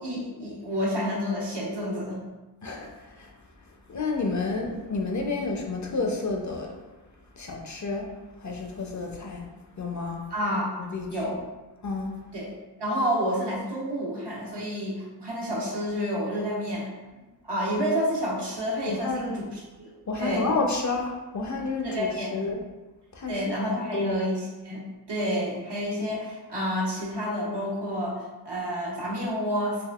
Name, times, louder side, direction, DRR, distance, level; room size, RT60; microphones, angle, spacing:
voice 1, 0.0-2.2 10.3-10.7 11.1-11.4 12.3-12.5 12.8-16.9 17.4-19.9 20.2-20.5 21.8-22.5 23.3-29.8, equal, 75° right, -5 dB, 1.0 m, -29 dB
voice 2, 2.6-3.3 3.9-6.7 7.4-8.1 8.4-9.5 9.8-10.2 10.8-11.1 11.8-12.2 18.9-19.4 20.1-22.6 23.1-23.4 23.9-24.2, left 3 dB, 45° left, 1 dB, 0.5 m, -30 dB
3.5 x 2.5 x 2.3 m, 1.2 s
cardioid pair, 50°, 42 cm